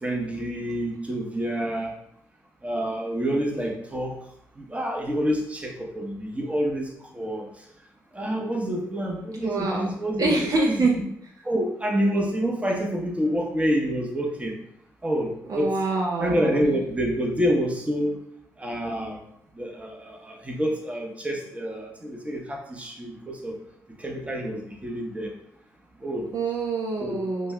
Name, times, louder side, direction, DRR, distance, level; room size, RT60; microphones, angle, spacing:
voice 1, 0.0-1.9 2.6-4.2 4.6-7.5 8.1-10.3 10.8-10.9 11.4-14.5 15.0-15.8 16.2-18.2 18.6-19.2 19.5-23.6 24.0-25.3 26.0-26.3 27.0-27.2, equal, 15° right, 1 dB, 0.9 m, -27 dB
voice 2, 9.4-9.9 10.2-10.9 15.5-16.6 26.3-27.5, right 3 dB, 50° right, -1 dB, 0.5 m, -25 dB
5.2 x 2.2 x 2.2 m, 0.70 s
hypercardioid pair, 45°, 8 cm